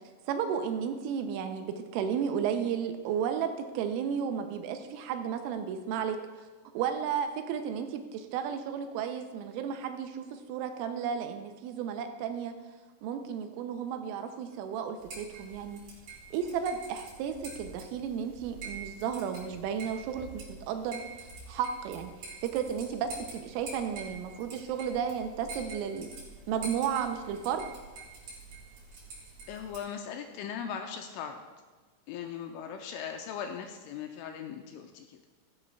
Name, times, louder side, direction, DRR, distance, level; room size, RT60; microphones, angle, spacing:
voice 1, 0.3-3.5 3.7-6.2 6.7-12.5 13.0-15.8 16.3-21.0 21.5-22.1 22.4-26.1 26.5-27.7, right 8 dB, 80° right, 6 dB, 3.1 m, -33 dB
sound 1, 15.0-29.8, right 3 dB, 55° right, 4.3 m, -46 dB
voice 2, 29.5-31.4 32.1-35.2, left 7 dB, 85° left, 5 dB, 2.9 m, -39 dB
16.0 x 12.5 x 2.3 m, 1.3 s
omnidirectional pair, 6.0 m